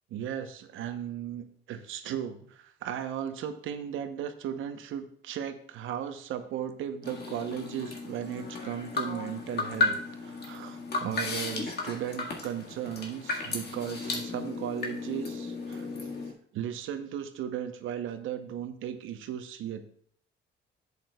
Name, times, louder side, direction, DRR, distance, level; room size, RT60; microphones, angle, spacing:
voice 1, 0.1-16.1 16.5-19.8, right 9 dB, 85° right, 9 dB, 0.8 m, -36 dB
sound 1, 7.0-16.3, left 3 dB, 55° left, 1.7 m, -34 dB
10.5 x 8.4 x 2.3 m, 0.62 s
cardioid pair, 90°, 20 cm